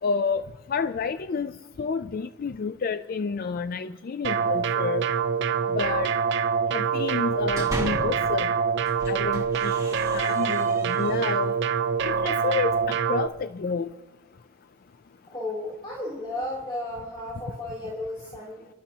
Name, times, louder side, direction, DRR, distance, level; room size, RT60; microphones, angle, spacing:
voice 1, 0.0-5.0 5.7-6.1 6.7-8.5 9.1-9.8 10.1-11.5 12.0-13.9, left 5 dB, 45° left, 11 dB, 0.4 m, -29 dB
sound 1, 4.2-13.3, right 6 dB, 60° right, 0.6 m, -25 dB
sound 2, 7.2-8.3 8.8-11.6, right 1 dB, 15° right, 1.9 m, -37 dB
voice 2, 15.3-18.7, left 1 dB, 25° left, -6 dB, 3.1 m, -34 dB
30.0 x 12.5 x 2.8 m, 1.1 s
head